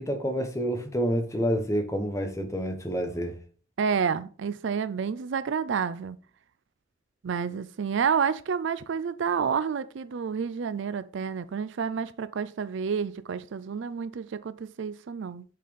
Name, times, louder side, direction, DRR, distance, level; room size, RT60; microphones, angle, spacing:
voice 1, 0.0-3.3, equal, 15° left, 1.1 m, -28 dB
voice 2, 3.8-6.2 7.2-15.4, right 6 dB, 65° right, 0.4 m, -29 dB
6.4 x 4.2 x 5.1 m
head